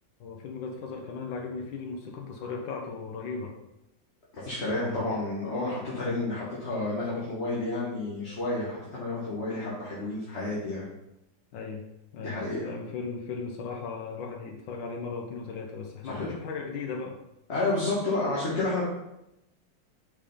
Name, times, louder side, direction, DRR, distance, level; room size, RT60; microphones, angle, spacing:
voice 1, 0.2-3.6 4.8-5.2 11.5-11.9 12.1-17.2, left 4 dB, 85° left, 1 dB, 1.6 m, -37 dB
voice 2, 4.4-10.9 12.2-12.7 16.1-16.3 17.5-18.8, left 2 dB, 40° left, -7 dB, 1.6 m, -30 dB
5.5 x 5.0 x 5.4 m, 0.88 s
omnidirectional pair, 2.0 m